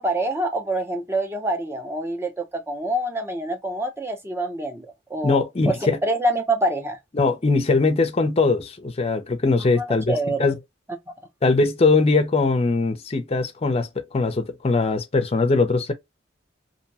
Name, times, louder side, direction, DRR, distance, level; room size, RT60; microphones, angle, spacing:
voice 1, 0.0-5.8 6.0-7.0 9.8-10.5, right 1 dB, 15° right, 0.6 m, -26 dB
voice 2, 5.2-6.0 7.1-10.5 11.4-15.9, left 3 dB, 35° left, 0.5 m, -21 dB
2.6 x 2.1 x 2.7 m
head